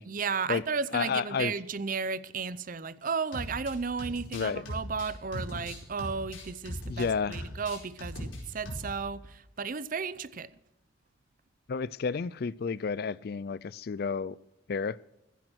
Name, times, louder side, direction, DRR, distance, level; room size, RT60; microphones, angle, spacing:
voice 1, 0.1-10.5, right 5 dB, 45° right, 0.6 m, -34 dB
voice 2, 0.9-1.5 4.3-4.6 6.9-7.5 11.7-14.4 14.7-15.0, left 5 dB, 50° left, 0.4 m, -31 dB
sound 1, 3.3-3.7 4.0-7.1 7.3-8.4 8.6-8.9, left 1 dB, 80° left, 4.7 m, -39 dB
15.0 x 10.5 x 6.2 m
head